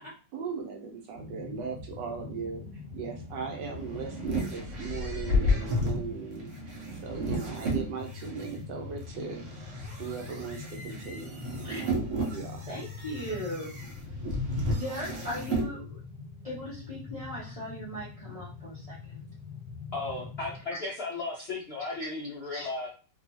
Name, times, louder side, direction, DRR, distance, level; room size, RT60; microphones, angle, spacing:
voice 1, 0.3-2.6 2.9-6.5 7.0-9.4 10.0-11.4 11.6-12.6, right 5 dB, 75° right, 2 dB, 1.3 m, -38 dB
sound 1, 1.1-20.6, left 3 dB, 35° right, 1.0 m, -44 dB
sound 2, 3.4-8.5 9.1-15.7, left 1 dB, 60° right, 0.8 m, -32 dB
voice 2, 12.7-13.7 14.7-16.0 16.4-19.2 20.7-20.9 22.0-22.1 22.5-22.7, equal, 35° left, -8 dB, 0.6 m, -38 dB
voice 3, 19.9-22.9, left 3 dB, 75° left, -4 dB, 0.5 m, -35 dB
3.0 x 2.3 x 2.7 m, 0.37 s
omnidirectional pair, 2.0 m